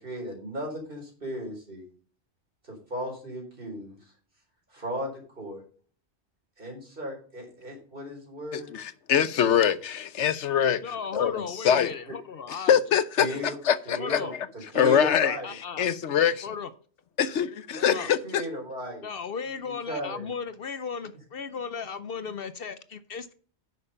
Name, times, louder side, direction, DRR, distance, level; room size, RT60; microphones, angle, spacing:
voice 1, 0.0-1.8 2.6-4.0 4.7-5.6 6.6-8.8 9.4-9.6 11.2-11.3 13.2-13.6 13.9-14.3 14.7-15.6 17.7-18.0 18.2-19.1 19.4-20.3, equal, 50° right, 4.3 m, -36 dB
voice 2, 8.5-10.8 11.1-11.9 12.7-13.3 13.6-14.2 14.7-15.4 15.8-16.5 17.2-18.4, left 8 dB, 90° left, 1.1 m, -23 dB
voice 3, 10.8-12.7 13.9-14.3 15.4-15.9 16.4-16.7 17.9-18.1 19.0-23.3, left 6 dB, 60° left, 0.8 m, -36 dB
9.8 x 6.5 x 5.4 m
omnidirectional pair, 1.2 m